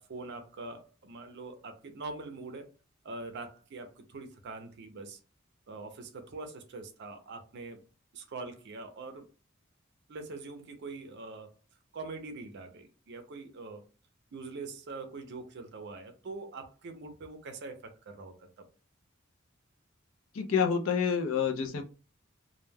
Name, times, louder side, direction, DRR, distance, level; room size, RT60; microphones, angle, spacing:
voice 1, 0.0-2.7 3.0-5.2 5.7-7.8 8.1-9.3 10.1-11.5 11.9-13.8 14.3-18.5, right 3 dB, 60° right, 0.5 m, -43 dB
voice 2, 20.3-21.8, left 6 dB, 70° left, 0.4 m, -28 dB
2.2 x 2.1 x 3.2 m
head